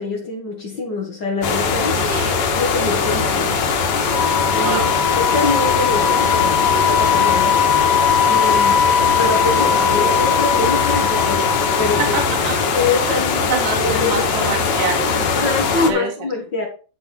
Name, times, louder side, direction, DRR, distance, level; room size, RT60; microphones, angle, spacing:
voice 1, 0.0-2.0 2.5-3.6 4.5-7.6 8.3-8.8 9.2-11.5 11.8-12.2 12.7-14.5 15.3-16.7, left 3 dB, 45° left, 1.6 m, -24 dB
sound 1, 1.4-15.9, left 5 dB, 85° left, 3.3 m, -20 dB
voice 2, 1.9-2.4 4.5-4.9 12.0-12.5 13.1-13.2 13.5-15.5 15.9-16.1, right 5 dB, 70° right, 2.9 m, -26 dB
Wind instrument woodwind instrument, 4.1-12.3, left 8 dB, 60° left, 2.0 m, -20 dB
10.5 x 6.7 x 4.4 m
omnidirectional pair, 3.9 m